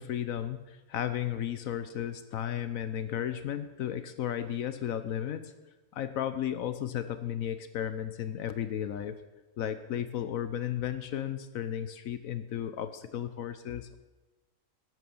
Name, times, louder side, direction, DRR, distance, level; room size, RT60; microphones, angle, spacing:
voice 1, 0.0-5.5 5.9-9.2 9.6-14.0, left 10 dB, 75° left, 12 dB, 1.1 m, -34 dB
13.0 x 9.2 x 7.0 m, 1.1 s
omnidirectional pair, 1.5 m